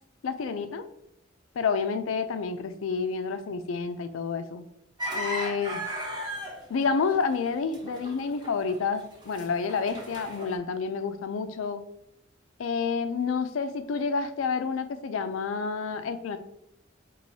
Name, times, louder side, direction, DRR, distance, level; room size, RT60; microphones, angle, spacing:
voice 1, 0.2-0.8 1.6-4.7 5.1-5.8 6.7-11.8 12.6-16.4, left 5 dB, 85° left, 10 dB, 0.4 m, -29 dB
sound 1, 5.0-9.0 9.2-10.5, equal, 25° right, 0.8 m, -35 dB
4.5 x 3.0 x 2.7 m, 0.80 s
head